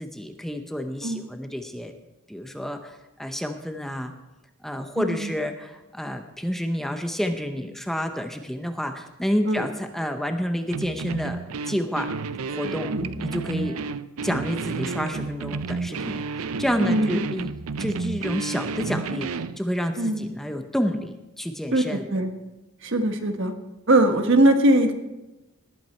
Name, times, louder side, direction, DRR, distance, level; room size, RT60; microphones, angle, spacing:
voice 1, 0.0-1.9 2.3-4.1 4.6-11.4 11.7-12.1 12.5-12.9 13.2-13.8 14.2-17.5 17.8-22.0, equal, ahead, 6 dB, 0.7 m, -29 dB
voice 2, 5.0-5.3 9.4-9.7 12.9-13.1 16.8-17.2 20.0-20.3 21.7-22.3 22.8-23.5 23.9-24.9, right 1 dB, 60° right, 6 dB, 1.4 m, -21 dB
sound 1, 10.7-19.6, right 4 dB, 75° right, 0.5 m, -31 dB
19.0 x 9.2 x 4.4 m, 1.0 s
head